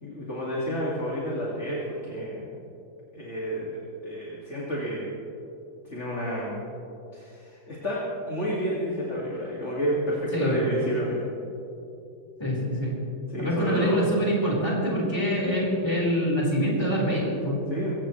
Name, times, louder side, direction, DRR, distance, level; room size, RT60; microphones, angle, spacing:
voice 1, 0.0-2.4 3.1-5.0 5.8-6.6 7.1-8.0 8.3-11.2 13.3-14.0 17.7-17.9, equal, 30° left, -5 dB, 2.5 m, -30 dB
voice 2, 12.4-13.0 13.4-17.6, equal, 10° left, -4 dB, 4.5 m, -25 dB
23.5 x 16.5 x 3.2 m, 2.8 s
omnidirectional pair, 2.4 m